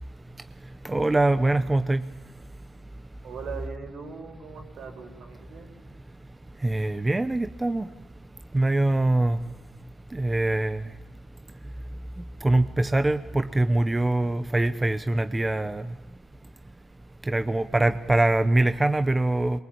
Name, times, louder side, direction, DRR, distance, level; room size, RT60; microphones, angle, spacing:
voice 1, 0.8-2.1 6.6-7.9 8.5-9.4 10.1-10.8 12.4-15.9 17.2-19.6, right 2 dB, 15° right, 10 dB, 0.9 m, -23 dB
voice 2, 3.2-5.7, right 5 dB, 70° right, 3 dB, 5.4 m, -40 dB
23.5 x 22.0 x 8.7 m, 1.2 s
cardioid pair, 90°, 0 cm